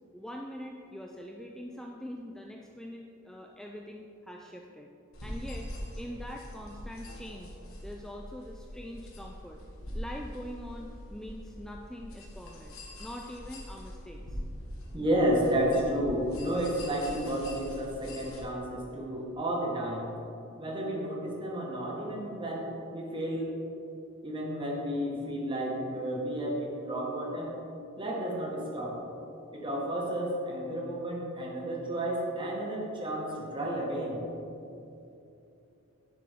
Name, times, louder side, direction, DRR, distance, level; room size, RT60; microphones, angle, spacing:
voice 1, 0.1-4.9 5.2-5.7 6.0-9.6 9.9-14.4, equal, 5° left, 1 dB, 0.4 m, -43 dB
sound 1, 5.1-18.4, equal, 85° left, 1.6 m, -43 dB
voice 2, 14.9-20.1 20.6-23.5 24.2-27.5 28.0-29.0 29.5-34.3, right 1 dB, 25° right, -3 dB, 1.6 m, -31 dB
9.9 x 7.5 x 3.6 m, 2.8 s
head